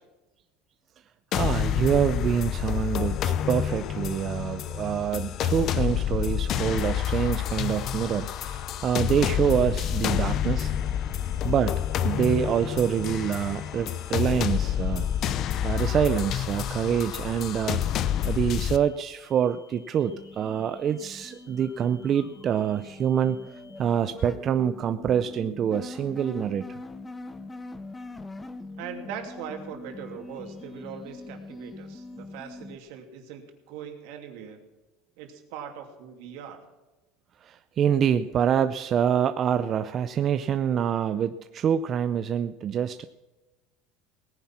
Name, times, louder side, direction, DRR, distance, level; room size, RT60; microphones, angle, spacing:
sound 1, 1.3-18.8, left 10 dB, 40° left, 0.7 m, -28 dB
voice 1, 1.3-10.7 11.4-15.1 15.6-17.8 18.2-23.4 23.8-26.8 37.4-43.1, right 8 dB, 35° right, 10 dB, 0.5 m, -26 dB
sound 2, 6.7-23.8, left 4 dB, 75° left, 2.2 m, -59 dB
sound 3, 20.1-32.8, left 2 dB, 10° left, 0.8 m, -43 dB
voice 2, 28.8-34.6 35.2-36.6, right 8 dB, 70° right, 4 dB, 2.8 m, -41 dB
18.0 x 10.5 x 5.9 m, 1.1 s
supercardioid pair, 145°, 0 cm